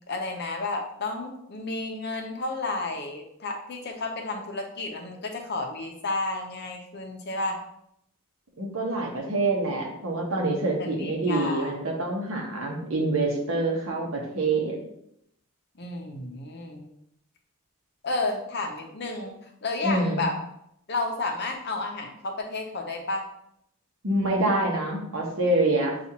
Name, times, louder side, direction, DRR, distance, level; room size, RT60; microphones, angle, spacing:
voice 1, 0.1-7.6 10.8-11.7 15.8-16.9 18.0-20.4 20.9-23.3, left 3 dB, 50° left, 2 dB, 0.7 m, -31 dB
voice 2, 8.6-14.8 19.8-20.3 24.0-26.0, right 2 dB, 60° right, -1 dB, 1.1 m, -26 dB
7.1 x 2.5 x 2.8 m, 0.75 s
head